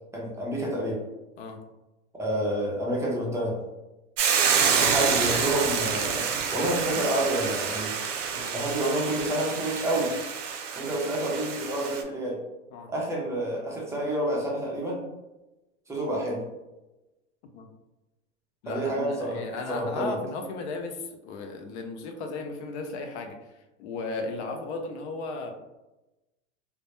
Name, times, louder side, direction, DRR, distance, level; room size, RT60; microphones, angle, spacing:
voice 1, 0.1-1.0 2.2-3.6 4.8-8.0 8.5-10.1 10.8-12.4 12.9-15.0 15.9-16.4 18.7-20.2, right 1 dB, 10° right, -4 dB, 0.5 m, -29 dB
Hiss / Boiling, 4.2-12.0, right 6 dB, 80° right, 0.5 m, -27 dB
voice 2, 18.6-23.4 23.8-25.5, left 3 dB, 65° left, 5 dB, 0.5 m, -35 dB
2.1 x 2.0 x 2.9 m, 1.0 s
hypercardioid pair, 115°, 37 cm